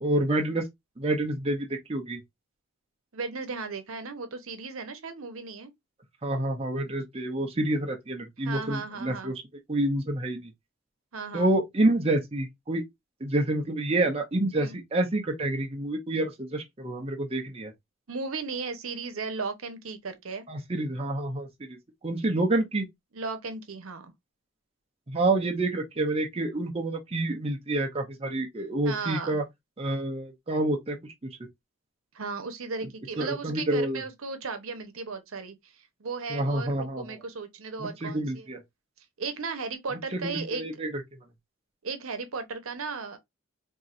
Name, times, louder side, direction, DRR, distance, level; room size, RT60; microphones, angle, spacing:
voice 1, 0.0-0.7 1.0-2.2 6.2-9.4 9.7-10.5 11.3-12.8 13.2-17.7 20.5-21.8 22.0-22.9 25.1-29.4 29.8-31.0 31.2-31.3 33.2-34.0 36.3-37.2 37.8-38.6 40.1-41.0, right 2 dB, 30° right, 0.6 m, -28 dB
voice 2, 3.1-5.7 8.4-9.3 11.1-11.5 14.6-14.8 18.1-20.5 23.1-24.1 28.8-29.4 32.1-38.5 39.2-40.6 41.8-43.2, right 4 dB, 85° right, 0.8 m, -35 dB
4.3 x 2.7 x 2.4 m
head